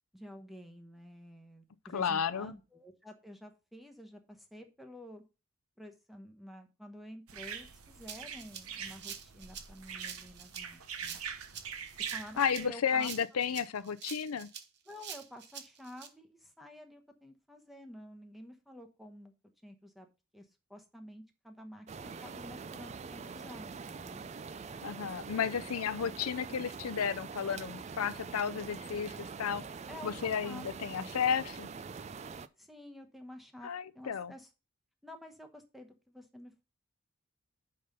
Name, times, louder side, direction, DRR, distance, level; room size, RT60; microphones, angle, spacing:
voice 1, 0.1-5.2 5.8-11.2 12.0-13.4 14.9-19.3 19.6-20.1 20.3-24.2 29.9-30.7 32.6-34.5 35.0-36.6, left 1 dB, ahead, 0.9 m, -50 dB
voice 2, 1.9-2.5 12.4-14.5 24.8-29.6 30.0-31.7 33.6-34.3, left 7 dB, 90° left, 0.5 m, -33 dB
sound 1, 7.3-12.7, right 7 dB, 90° right, 1.0 m, -43 dB
Rattle (instrument), 8.1-16.1, right 8 dB, 50° right, 0.9 m, -46 dB
sound 2, 21.9-32.5, right 5 dB, 30° right, 0.3 m, -44 dB
5.5 x 5.3 x 6.7 m
head